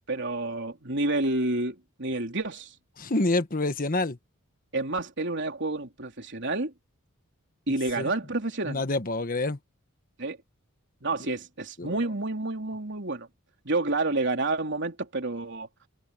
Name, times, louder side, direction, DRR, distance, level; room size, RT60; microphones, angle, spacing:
voice 1, 0.1-2.7 4.7-6.7 7.7-8.8 10.2-10.4 11.0-13.3 13.6-15.7, right 2 dB, 55° right, 3.9 m, -29 dB
voice 2, 3.0-4.2 8.0-8.1 8.7-9.6 11.8-11.9, left 2 dB, 40° left, 1.3 m, -27 dB
open air
head